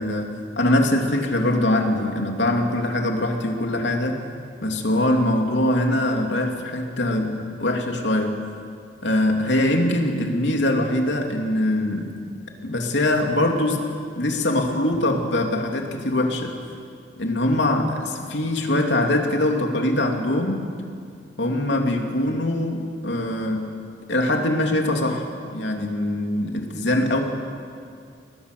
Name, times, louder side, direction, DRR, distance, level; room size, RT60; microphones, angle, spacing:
voice 1, 0.0-4.2 4.6-8.4 9.0-12.2 12.6-13.8 14.2-16.5 17.2-20.7 21.4-23.7 24.1-25.3 25.5-27.2, left 1 dB, 85° left, 2 dB, 3.0 m, -22 dB
29.5 x 20.5 x 7.0 m, 2.2 s
head